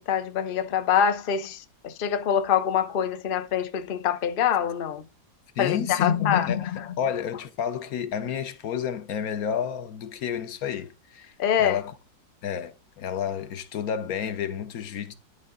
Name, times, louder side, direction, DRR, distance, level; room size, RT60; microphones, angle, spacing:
voice 1, 0.0-5.0 5.6-6.9 11.4-11.8, left 8 dB, 85° left, 0.4 m, -25 dB
voice 2, 5.6-6.7 7.0-11.9 12.4-15.1, left 8 dB, 60° left, 1.1 m, -31 dB
10.5 x 3.8 x 3.7 m
omnidirectional pair, 2.0 m